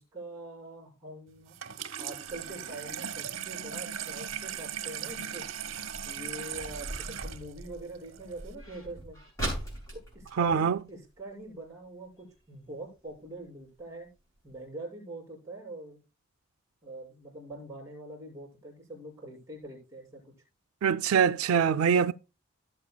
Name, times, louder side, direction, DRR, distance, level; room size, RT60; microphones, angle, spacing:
voice 1, 0.0-1.6 2.0-5.4 6.0-9.2 9.9-14.1 14.4-16.0 16.8-20.2, right 2 dB, 15° right, 6.0 m, -44 dB
Water tap faucet / Sink (filling or washing), 1.5-8.5, right 9 dB, 70° right, 0.9 m, -38 dB
sound 1, 2.3-11.5 11.8-11.9 12.2-12.6 13.1-13.2 13.7-13.8 14.1-14.2 14.5-14.6, right 1 dB, 15° left, 6.6 m, -41 dB
voice 2, 10.4-10.8 20.8-22.1, right 7 dB, 85° right, 0.4 m, -24 dB
17.5 x 7.7 x 2.2 m
head